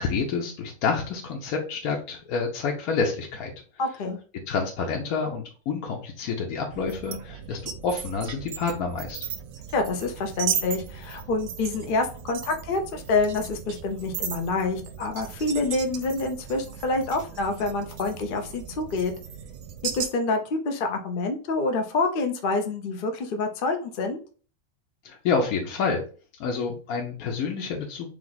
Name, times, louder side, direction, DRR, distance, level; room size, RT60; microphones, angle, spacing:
voice 1, 0.0-3.5 4.5-9.3 25.0-26.0 26.4-28.1, left 5 dB, 80° left, 1 dB, 1.2 m, -28 dB
voice 2, 3.8-4.2 9.7-19.1 19.9-24.2, left 3 dB, 50° left, 5 dB, 0.6 m, -27 dB
sound 1, 6.7-20.1, right 8 dB, 65° right, 0.8 m, -36 dB
3.4 x 3.2 x 3.9 m, 0.39 s
omnidirectional pair, 1.5 m